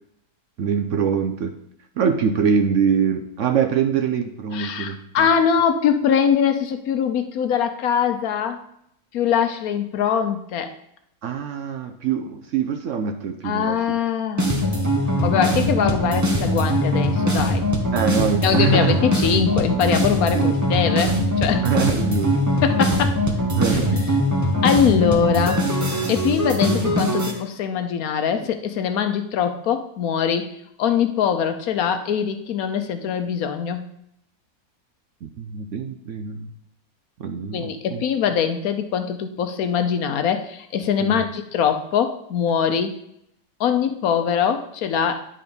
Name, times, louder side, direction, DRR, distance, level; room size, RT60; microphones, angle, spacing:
voice 1, 0.6-1.5 2.0-5.3 11.2-14.0 15.3-15.6 17.9-19.0 20.3-20.5 21.6-22.4 22.8-22.9 23.5-24.0 35.2-36.5 37.2-38.0 41.0-41.2, right 6 dB, 65° right, 6 dB, 0.8 m, -24 dB
voice 2, 4.5-8.6 9.1-10.7 13.4-14.5 15.2-17.6 18.4-21.6 22.6-23.2 24.6-25.6 26.1-30.5 30.8-33.8 37.5-43.0 43.6-45.2, left 7 dB, 70° left, 8 dB, 1.1 m, -22 dB
sound 1, 14.4-27.3, equal, 15° right, 0.8 m, -21 dB
9.9 x 3.9 x 5.2 m, 0.75 s
omnidirectional pair, 1.7 m